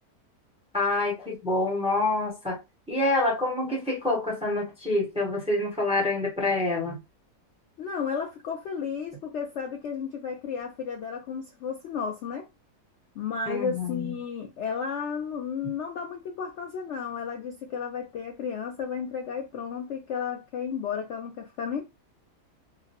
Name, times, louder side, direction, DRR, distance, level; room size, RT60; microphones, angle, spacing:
voice 1, 0.7-2.6 2.9-7.0 13.5-14.1, left 2 dB, 5° right, 0.6 m, -27 dB
voice 2, 7.8-12.5 13.2-21.8, left 6 dB, 85° left, 0.6 m, -33 dB
3.8 x 2.1 x 2.8 m
omnidirectional pair, 1.8 m